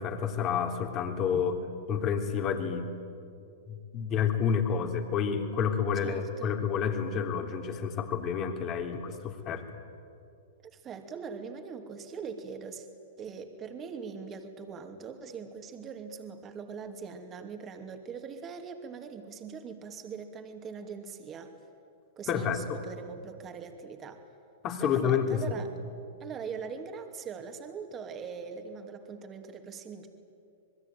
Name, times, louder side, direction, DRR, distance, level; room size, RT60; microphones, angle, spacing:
voice 1, 0.0-1.6 1.9-2.9 3.7-9.8 22.3-22.8 24.6-25.6, left 7 dB, 35° left, 5 dB, 3.3 m, -29 dB
voice 2, 5.9-6.6 10.7-12.9 13.2-21.5 22.2-24.3 24.8-25.7 26.2-30.1, right 6 dB, 25° right, 5 dB, 2.6 m, -41 dB
26.0 x 21.0 x 9.3 m, 2.5 s
hypercardioid pair, 115°, 0 cm